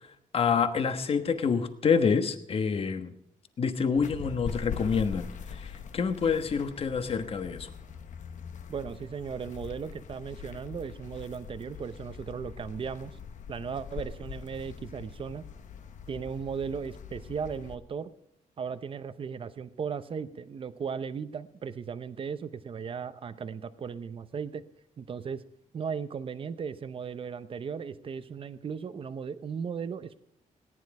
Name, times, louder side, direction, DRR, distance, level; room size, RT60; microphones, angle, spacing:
voice 1, 0.3-3.1 3.6-7.7, left 6 dB, 45° left, 9 dB, 1.3 m, -27 dB
sound 1, 4.0-17.7, left 7 dB, 65° left, 1.1 m, -42 dB
voice 2, 8.7-13.2 13.5-15.4 16.1-18.1 18.6-24.6 25.0-25.4 25.7-30.2, right 6 dB, 40° right, 13 dB, 0.8 m, -36 dB
18.5 x 10.5 x 4.9 m, 0.72 s
wide cardioid pair, 150°, 14 cm